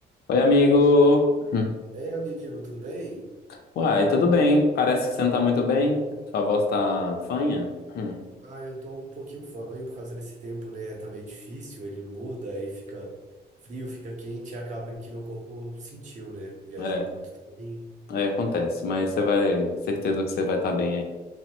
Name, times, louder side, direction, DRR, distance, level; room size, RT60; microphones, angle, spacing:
voice 1, 0.3-1.8 3.8-6.0 6.3-8.2 16.8-17.0 18.1-21.0, left 3 dB, 65° left, 3 dB, 0.4 m, -22 dB
voice 2, 1.9-3.3 8.4-13.1 13.6-17.2 17.5-17.9, right 1 dB, 45° right, -1 dB, 0.6 m, -37 dB
2.9 x 2.0 x 2.9 m, 1.2 s
wide cardioid pair, 175°, 17 cm